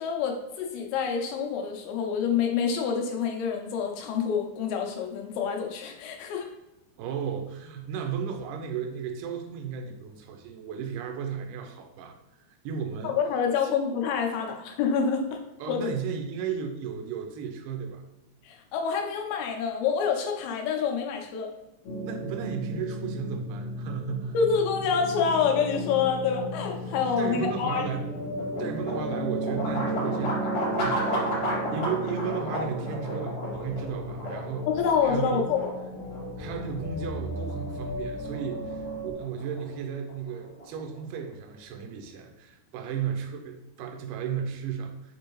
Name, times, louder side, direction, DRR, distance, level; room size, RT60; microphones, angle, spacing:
voice 1, 0.0-6.5 13.0-15.4 15.7-15.9 18.5-21.5 24.3-27.8 34.7-35.7, left 6 dB, 85° left, 3 dB, 2.6 m, -27 dB
voice 2, 7.0-12.2 12.5-13.2 13.6-13.7 15.6-18.0 22.0-24.4 26.8-34.7 35.0-35.5 36.4-45.1, right 7 dB, 85° right, 3 dB, 1.9 m, -34 dB
sound 1, 21.9-39.1, right 1 dB, 65° left, 2.3 m, -35 dB
sound 2, 27.6-41.3, equal, 50° left, 2.0 m, -34 dB
6.4 x 2.6 x 3.0 m, 0.92 s
omnidirectional pair, 4.4 m